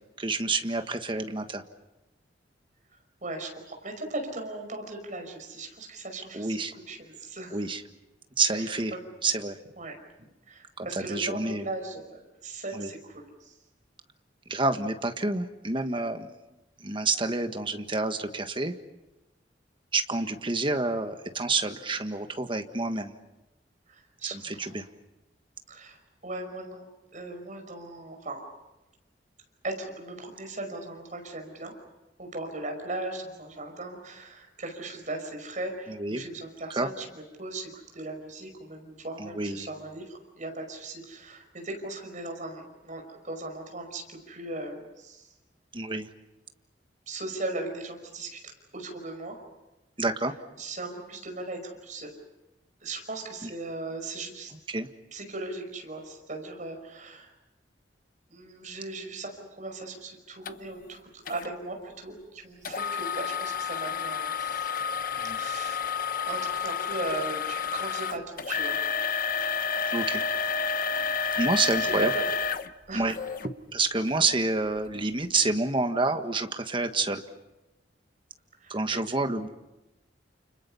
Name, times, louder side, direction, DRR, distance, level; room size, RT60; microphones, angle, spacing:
voice 1, 0.2-1.6 6.3-6.7 7.5-7.8 8.4-8.9 9.2-9.6 10.8-11.6 12.7-12.9 14.5-16.3 16.8-18.7 19.9-23.2 24.3-24.9 35.9-36.2 36.7-36.9 39.2-39.7 45.7-46.1 50.0-50.3 53.4-53.5 54.7-54.9 65.2-65.4 69.9-70.2 71.3-72.1 72.9-73.1 73.4-77.2 78.7-79.5, right 3 dB, 30° right, 7 dB, 1.5 m, -28 dB
voice 2, 3.2-7.6 8.5-9.0 9.8-10.0 10.5-13.5 23.9-24.8 25.7-26.8 27.1-28.4 29.6-31.7 32.2-45.3 47.1-48.4 48.7-49.4 50.6-52.1 52.8-54.5 55.1-57.3 58.3-64.7 65.3-65.9 66.2-68.8 71.8-72.2 72.9-73.1 78.6-79.0, right 2 dB, 45° right, 4 dB, 5.5 m, -38 dB
sound 1, 60.4-60.5 61.3-61.5 62.6-73.5 74.1-74.2 74.8-74.9, left 6 dB, 50° left, 0.9 m, -30 dB
30.0 x 29.5 x 5.7 m, 1.0 s
head